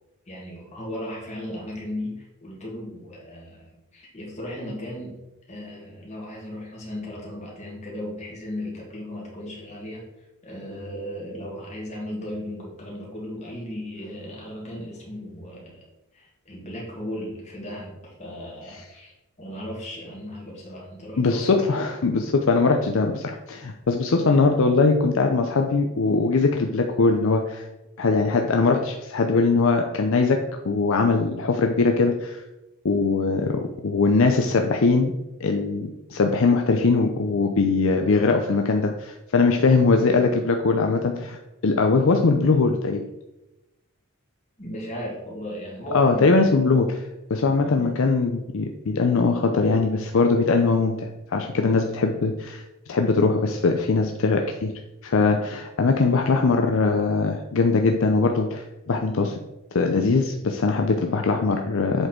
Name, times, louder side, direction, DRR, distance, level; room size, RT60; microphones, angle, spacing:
voice 1, 0.3-5.2 5.5-10.0 10.4-15.8 16.1-21.6 44.6-46.8 47.6-47.9, left 1 dB, 30° left, -3 dB, 2.3 m, -36 dB
voice 2, 21.2-27.7 28.0-32.4 32.8-35.1 35.4-41.4 41.6-43.0 45.9-47.0 47.3-52.6 52.9-54.7 55.0-59.4 59.7-62.1, left 4 dB, 60° left, 4 dB, 0.5 m, -21 dB
7.8 x 4.2 x 4.5 m, 0.98 s
head